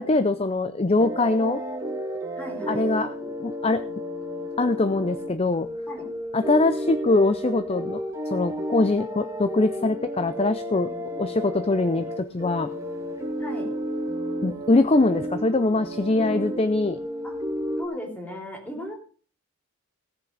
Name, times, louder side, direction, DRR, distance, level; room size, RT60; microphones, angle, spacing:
voice 1, 0.0-1.6 2.7-3.8 4.6-5.7 6.3-8.0 8.3-10.9 11.2-12.7 14.4-17.0, left 2 dB, 25° left, 12 dB, 0.5 m, -23 dB
sound 1, 1.0-17.8, equal, 15° right, 1.7 m, -32 dB
voice 2, 2.4-2.8 5.9-6.1 11.1-11.3 13.4-13.7 17.2-17.4 17.8-18.9, left 1 dB, 5° left, 1 dB, 3.3 m, -36 dB
17.5 x 7.4 x 5.3 m, 0.40 s
head